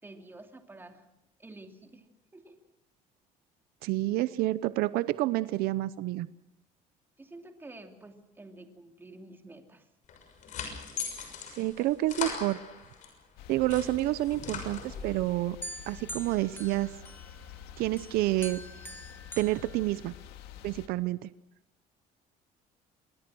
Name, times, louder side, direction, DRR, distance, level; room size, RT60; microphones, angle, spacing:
voice 1, 0.0-1.1 1.4-2.0 2.3-2.6 7.2-9.9, right 2 dB, 15° right, 4 dB, 2.9 m, -49 dB
voice 2, 3.8-6.3 11.6-12.6 13.5-15.6 15.9-16.9 17.8-18.6 19.4-20.1 20.6-21.3, right 17 dB, 80° right, 16 dB, 0.8 m, -29 dB
sound 1, 10.1-13.1 13.5-15.2, left 6 dB, 55° left, 6.3 m, -39 dB
sound 2, 13.4-20.9, left 9 dB, 90° left, 2.3 m, -48 dB
sound 3, 15.6-17.6 18.0-20.5, equal, 15° left, 2.2 m, -45 dB
26.5 x 21.0 x 6.2 m, 0.81 s
cardioid pair, 140°, 15 cm